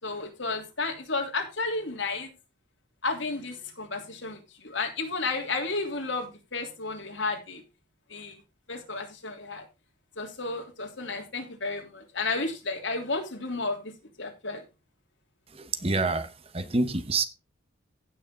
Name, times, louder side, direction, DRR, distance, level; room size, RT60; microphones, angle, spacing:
voice 1, 0.0-2.3 3.0-7.6 8.1-8.4 8.7-9.6 10.2-13.9 14.2-14.6, left 3 dB, 75° left, 3.1 m, -32 dB
voice 2, 15.5-17.2, right 3 dB, 30° right, 1.0 m, -27 dB
15.5 x 6.4 x 3.7 m
head